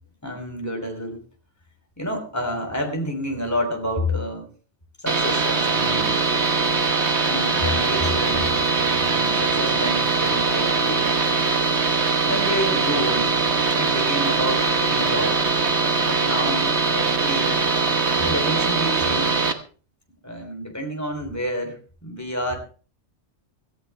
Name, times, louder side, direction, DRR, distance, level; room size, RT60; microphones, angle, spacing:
voice 1, 0.2-1.2 2.0-4.5 5.0-6.2 7.2-8.5 9.0-11.2 12.3-13.4 13.7-15.4 16.0-17.6 18.2-19.5 20.2-22.6, equal, 15° left, 3 dB, 3.4 m, -29 dB
sound 1, 5.1-19.5, right 4 dB, 70° right, 1.5 m, -21 dB
17.5 x 15.0 x 3.4 m, 0.39 s
omnidirectional pair, 1.2 m